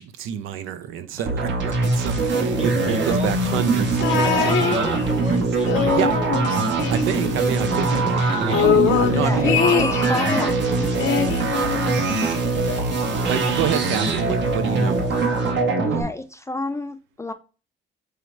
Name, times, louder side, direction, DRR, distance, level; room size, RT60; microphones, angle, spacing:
voice 1, 0.0-4.4 5.9-6.1 6.9-9.7 11.5-11.8 13.3-15.0, right 8 dB, 90° right, 0.5 m, -28 dB
sound 1, 1.3-16.0, right 3 dB, 65° right, 0.9 m, -22 dB
voice 2, 2.6-3.3 3.7-6.1 8.3-8.8, right 2 dB, 30° right, 1.0 m, -32 dB
sound 2, 4.0-5.3 5.6-7.5 7.8-7.9 8.2-10.6 11.0-12.3 13.1-13.2, left 8 dB, 75° left, 0.7 m, -23 dB
voice 3, 9.1-11.0 15.8-17.3, left 2 dB, 15° left, 0.3 m, -29 dB
4.8 x 2.0 x 4.5 m
cardioid pair, 90°, 20 cm